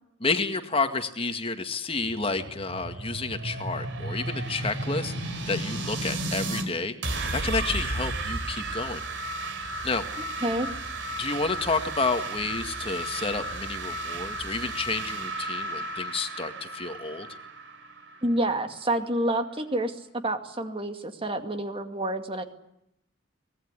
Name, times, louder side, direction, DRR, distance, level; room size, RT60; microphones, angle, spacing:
voice 1, 0.2-6.9 7.3-9.0 9.8-10.0 11.2-17.3, left 3 dB, 30° left, 7 dB, 2.0 m, -30 dB
sound 1, 2.0-6.7 7.0-18.6, right 2 dB, 70° right, 4.9 m, -33 dB
voice 2, 18.2-22.4, right 1 dB, 25° right, 7 dB, 2.2 m, -28 dB
24.0 x 20.0 x 9.8 m, 0.81 s
head